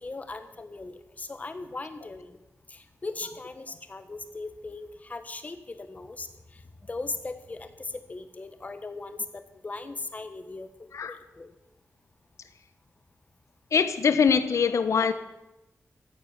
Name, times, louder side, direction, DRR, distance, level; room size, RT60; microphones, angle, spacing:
voice 1, 0.0-2.4 2.7-11.5, left 3 dB, 30° left, 10 dB, 1.1 m, -39 dB
voice 2, 13.7-15.1, left 6 dB, 80° left, 11 dB, 1.0 m, -23 dB
14.0 x 8.4 x 8.6 m, 0.98 s
wide cardioid pair, 160°, 5 cm